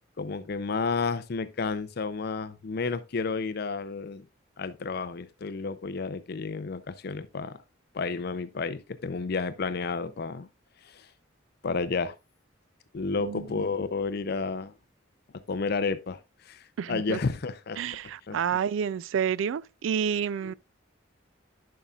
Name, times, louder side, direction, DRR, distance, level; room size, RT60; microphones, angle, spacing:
voice 1, 0.2-4.2 4.6-7.6 7.9-10.5 10.8-11.1 11.6-12.2 12.9-14.7 15.5-17.8 18.3-18.4 20.4-20.5, left 4 dB, 55° left, 0.5 m, -31 dB
voice 2, 16.8-17.2 17.8-20.5, right 8 dB, 75° right, 0.3 m, -29 dB
11.0 x 5.6 x 2.3 m
head